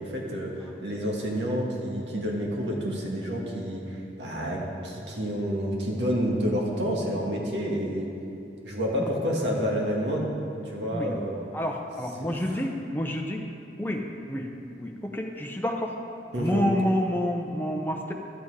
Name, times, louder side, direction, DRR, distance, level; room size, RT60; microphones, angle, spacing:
voice 1, 0.0-8.1 8.6-10.2 10.6-11.4 16.3-16.6, equal, 85° right, -2 dB, 1.8 m, -29 dB
voice 2, 11.5-13.4 13.8-14.5 14.8-15.9 16.4-18.1, equal, 10° left, 1 dB, 0.7 m, -28 dB
11.5 x 8.0 x 4.8 m, 2.7 s
head